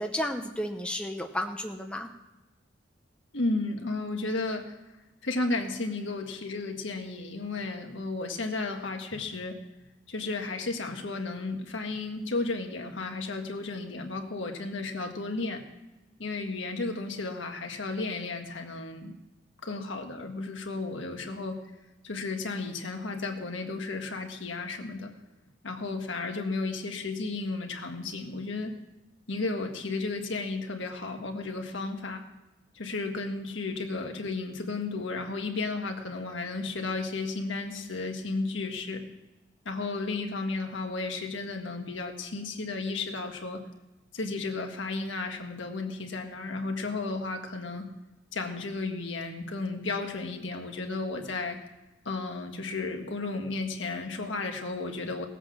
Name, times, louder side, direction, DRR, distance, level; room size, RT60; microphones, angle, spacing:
voice 1, 0.0-2.1, equal, 5° left, 3 dB, 0.7 m, -32 dB
voice 2, 3.3-4.8 5.2-9.6 10.1-15.6 16.2-19.1 19.6-21.6 22.0-25.1 25.6-28.8 29.3-32.2 32.8-39.0 39.7-43.6 44.1-47.9 48.3-51.6 52.1-55.3, left 3 dB, 75° left, 3 dB, 1.7 m, -33 dB
18.5 x 8.0 x 6.1 m, 1.0 s
head